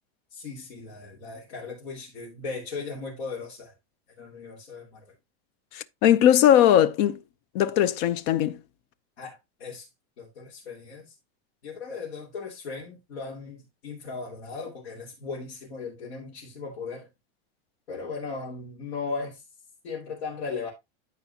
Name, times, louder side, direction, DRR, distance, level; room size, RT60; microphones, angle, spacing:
voice 1, 0.3-3.7 4.2-5.1 9.2-9.9 10.2-11.1 11.6-17.1 17.9-19.4 19.8-20.7, left 4 dB, 85° left, 3.2 m, -37 dB
voice 2, 5.7-7.2 7.5-8.6, left 11 dB, 55° left, 0.7 m, -19 dB
13.5 x 4.5 x 2.8 m
supercardioid pair, 140°, 32 cm